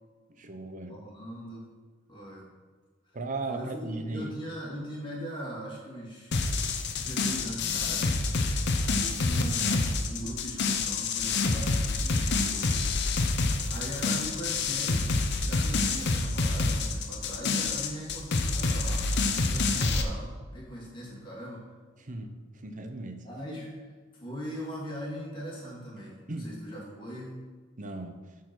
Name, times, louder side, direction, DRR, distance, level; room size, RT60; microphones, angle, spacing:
voice 1, 0.3-1.0 3.1-4.3 22.0-23.3 26.3-26.6 27.8-28.2, right 2 dB, 40° right, 7 dB, 0.8 m, -37 dB
voice 2, 0.9-1.7 2.1-2.5 3.5-6.3 7.0-8.1 8.9-12.7 13.7-15.1 15.4-21.6 23.2-23.7 24.1-27.4, equal, 25° left, -5 dB, 2.6 m, -40 dB
sound 1, 6.3-20.0, left 3 dB, 60° left, 0.8 m, -27 dB
8.5 x 4.8 x 6.2 m, 1.4 s
head